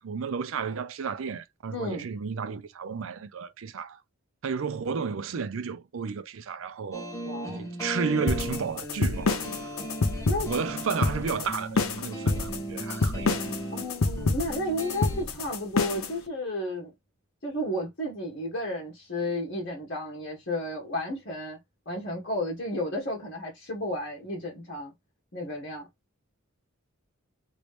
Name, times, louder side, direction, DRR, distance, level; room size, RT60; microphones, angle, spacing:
voice 1, 0.0-4.0 4.4-7.1 7.5-9.5 10.5-13.3, right 5 dB, 70° right, 0.5 m, -32 dB
voice 2, 1.7-2.1 7.3-7.6 10.3-10.5 13.7-16.9 17.4-21.6 21.8-24.9 25.3-25.9, left 1 dB, 55° left, 1.3 m, -32 dB
sound 1, 6.9-15.2, right 1 dB, 15° left, 0.9 m, -37 dB
sound 2, 8.3-16.1, left 3 dB, 85° left, 0.7 m, -27 dB
3.1 x 2.8 x 3.1 m
head